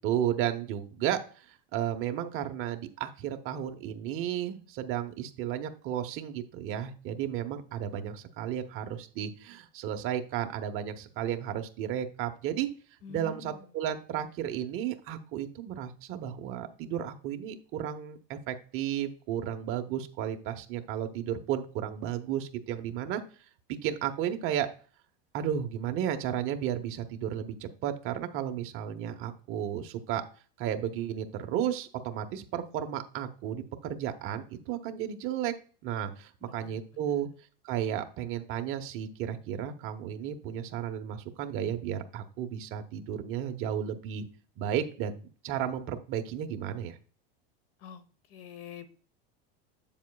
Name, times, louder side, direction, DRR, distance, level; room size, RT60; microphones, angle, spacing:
voice 1, 0.0-12.7 13.1-23.2 23.8-24.7 25.3-30.2 30.6-35.5 35.8-37.3 37.6-44.3 44.6-47.0, right 10 dB, 45° right, 7 dB, 1.0 m, -33 dB
voice 2, 13.0-13.7 36.4-37.2 47.8-48.9, left 7 dB, 50° left, 14 dB, 1.0 m, -47 dB
8.1 x 7.3 x 2.3 m, 0.40 s
supercardioid pair, 130°, 30 cm